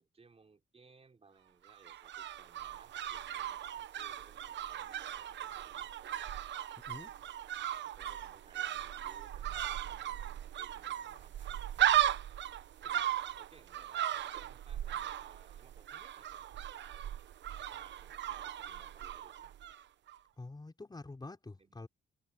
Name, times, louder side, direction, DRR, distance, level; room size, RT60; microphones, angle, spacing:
voice 1, 0.0-5.9 7.8-11.7 12.8-17.1 17.7-19.6 21.5-21.8, right 4 dB, 30° right, 5.0 m, -63 dB
sound 1, 1.6-19.8 20.1-20.2, right 11 dB, 65° right, 1.0 m, -37 dB
voice 2, 20.4-21.9, left 3 dB, 20° left, 4.8 m, -47 dB
cardioid pair, 90°, 20 cm